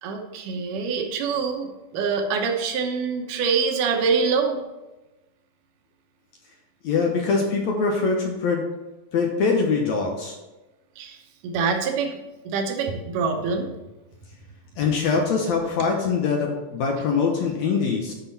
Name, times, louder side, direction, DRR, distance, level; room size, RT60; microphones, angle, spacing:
voice 1, 0.0-4.6 11.0-11.2 11.4-12.2 12.5-13.7, right 5 dB, 75° right, 3 dB, 2.5 m, -25 dB
voice 2, 6.8-8.6 9.1-10.3 14.8-18.1, left 5 dB, 70° left, 1 dB, 2.0 m, -23 dB
9.9 x 6.1 x 4.1 m, 1.1 s
omnidirectional pair, 3.8 m